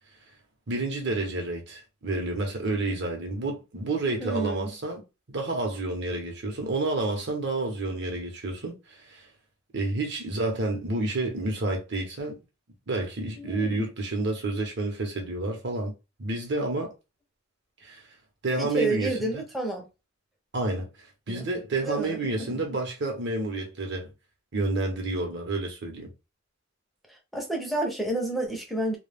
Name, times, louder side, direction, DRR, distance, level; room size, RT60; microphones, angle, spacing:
voice 1, 0.7-5.0 5.3-9.3 9.7-12.4 12.9-15.9 16.2-16.9 17.8-18.0 18.4-19.4 20.5-20.9 21.3-24.1 24.5-26.1, right 2 dB, 55° right, 0.9 m, -29 dB
voice 2, 4.2-4.7 13.4-13.9 18.6-19.9 21.3-21.5 21.8-22.5 27.1-29.0, right 1 dB, ahead, 0.6 m, -30 dB
2.3 x 2.3 x 3.3 m
head